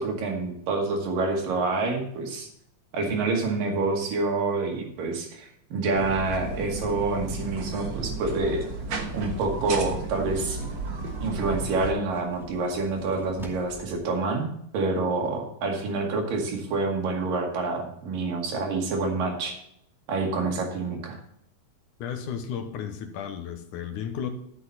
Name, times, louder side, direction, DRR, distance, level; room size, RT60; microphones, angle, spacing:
voice 1, 0.0-2.5 2.9-8.6 9.1-10.6 11.2-19.6 20.1-21.2, right 3 dB, 85° right, 1 dB, 3.8 m, -27 dB
sound 1, 5.9-11.9, right 3 dB, 55° right, 1.4 m, -33 dB
sound 2, 10.6-14.0, right 2 dB, ahead, 1.5 m, -47 dB
voice 2, 22.0-24.3, left 8 dB, 75° left, 7 dB, 2.5 m, -33 dB
12.0 x 8.1 x 4.2 m, 0.72 s
omnidirectional pair, 3.8 m